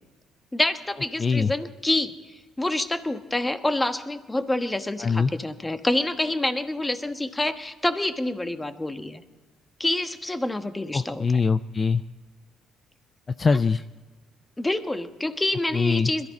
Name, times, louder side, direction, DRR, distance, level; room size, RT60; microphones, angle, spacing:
voice 1, 0.5-9.2 9.8-11.4 14.6-16.3, left 1 dB, 15° left, 9 dB, 1.3 m, -27 dB
voice 2, 1.2-1.5 5.0-5.3 10.9-12.0 13.4-13.8 15.7-16.1, left 5 dB, 35° left, 12 dB, 0.4 m, -22 dB
21.5 x 14.0 x 4.2 m, 1.3 s
supercardioid pair, 70°, 0 cm